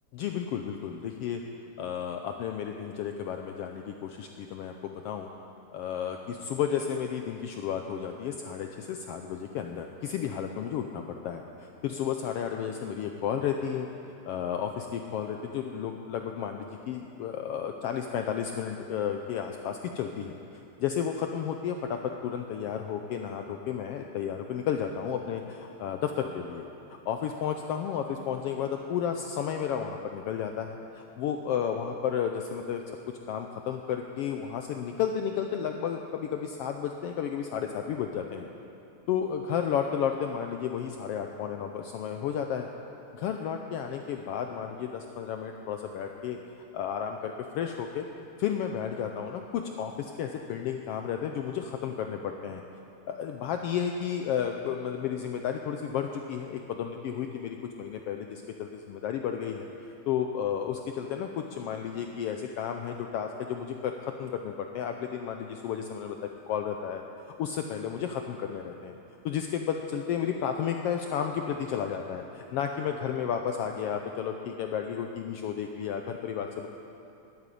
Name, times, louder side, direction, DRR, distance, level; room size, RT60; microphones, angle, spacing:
voice 1, 0.1-1.4 1.8-5.3 5.7-13.9 14.3-20.3 20.8-32.8 33.3-38.5 39.1-42.7 43.1-46.4 46.7-48.1 48.4-52.6 53.0-66.2 66.5-67.0 67.4-68.9 69.2-76.7, left 8 dB, 85° left, 4 dB, 1.3 m, -32 dB
11.5 x 9.1 x 9.9 m, 2.8 s
omnidirectional pair, 3.4 m